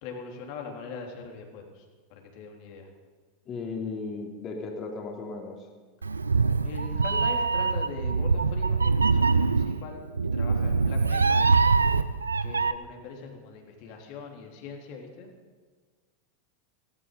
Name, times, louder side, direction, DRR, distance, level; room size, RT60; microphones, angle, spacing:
voice 1, 0.0-2.9 6.6-10.0 10.3-11.4 12.4-15.3, left 4 dB, 50° left, 2 dB, 3.5 m, -41 dB
voice 2, 3.5-5.7, left 4 dB, 35° left, 1 dB, 3.6 m, -36 dB
Meow, 6.0-12.7, right 4 dB, 85° right, 0.5 m, -24 dB
16.5 x 16.0 x 5.4 m, 1.4 s
figure-of-eight pair, 90°, 0 cm